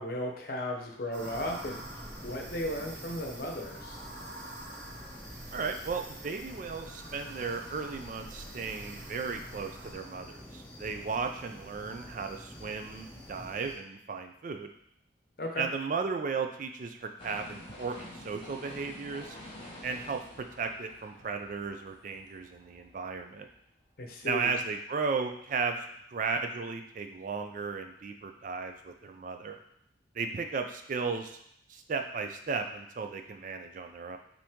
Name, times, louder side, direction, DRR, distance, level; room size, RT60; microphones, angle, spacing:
voice 1, 0.0-1.8 2.2-4.0 15.4-15.7 24.0-24.5, left 1 dB, 50° left, 1 dB, 0.7 m, -35 dB
sound 1, 1.1-9.9, right 1 dB, 60° right, 0.9 m, -47 dB
sound 2, 1.2-13.7, equal, 10° left, 0.7 m, -48 dB
voice 2, 5.5-14.7 15.6-19.4 19.8-23.5 24.2-25.8 26.1-29.6 30.1-31.4 31.7-34.2, right 5 dB, 45° right, 5 dB, 0.3 m, -35 dB
sound 3, 17.2-23.2 23.6-23.7, left 1 dB, 30° left, 1.1 m, -48 dB
5.5 x 2.7 x 3.5 m, 0.71 s
head